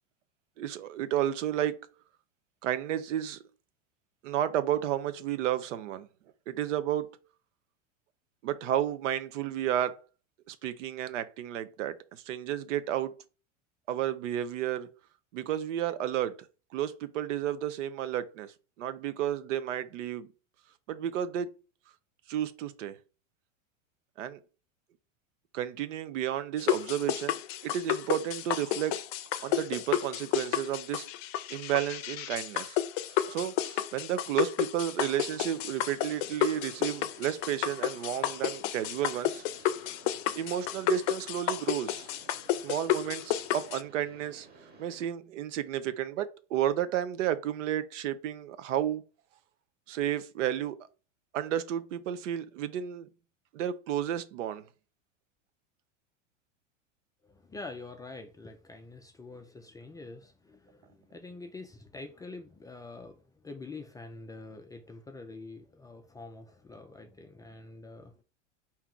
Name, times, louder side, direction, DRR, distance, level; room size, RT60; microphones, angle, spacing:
voice 1, 0.6-1.9 2.6-3.4 4.2-6.1 6.5-7.1 8.4-10.0 10.5-13.1 13.9-14.9 15.3-16.5 16.7-18.5 18.8-20.3 20.9-21.5 22.3-23.0 24.2-24.4 25.5-29.1 29.4-31.1 31.5-32.8 33.1-39.4 40.3-42.1 42.6-44.5 44.8-49.0 49.9-50.8 51.3-53.1 53.5-54.6, right 11 dB, 75° right, 0.8 m, -32 dB
sound 1, 26.6-43.8, left 12 dB, 50° left, 0.6 m, -31 dB
Mechanisms, 35.1-45.1, right 3 dB, 25° right, 1.2 m, -55 dB
voice 2, 57.2-68.2, left 3 dB, 10° left, 0.3 m, -46 dB
4.5 x 2.9 x 3.7 m
hypercardioid pair, 105°, 37 cm